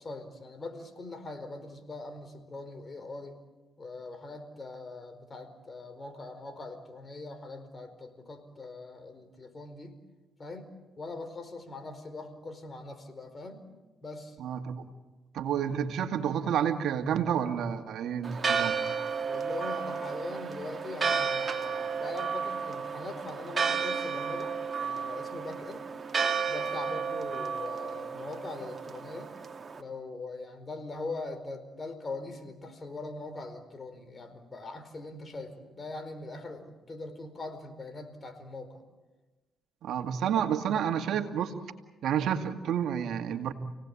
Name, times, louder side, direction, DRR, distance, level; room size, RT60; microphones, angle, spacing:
voice 1, 0.0-3.4 3.8-10.0 10.4-13.7 14.0-14.4 19.3-25.9 26.5-29.3 29.8-38.8, left 3 dB, 35° left, 8 dB, 4.7 m, -41 dB
voice 2, 14.4-14.8 15.3-18.8 39.8-41.6 42.0-43.5, right 8 dB, 75° right, 6 dB, 2.1 m, -30 dB
Church bell, 18.2-29.8, right 5 dB, 40° right, 2.6 m, -32 dB
29.5 x 18.5 x 8.5 m, 1.2 s
supercardioid pair, 65°, 0 cm